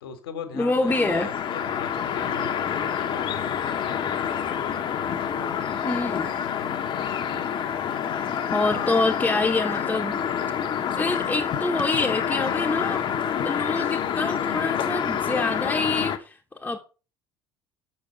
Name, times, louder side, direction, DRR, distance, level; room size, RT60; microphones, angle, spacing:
voice 1, 0.0-4.1 6.4-7.2, left 6 dB, 70° left, 1.4 m, -41 dB
voice 2, 0.5-1.3 5.8-6.4 8.5-10.2 11.0-13.0 13.4-16.8, left 3 dB, 10° left, 0.9 m, -26 dB
sound 1, 0.9-16.2, left 8 dB, 40° left, 0.9 m, -27 dB
6.7 x 5.3 x 5.5 m
figure-of-eight pair, 60°, 12 cm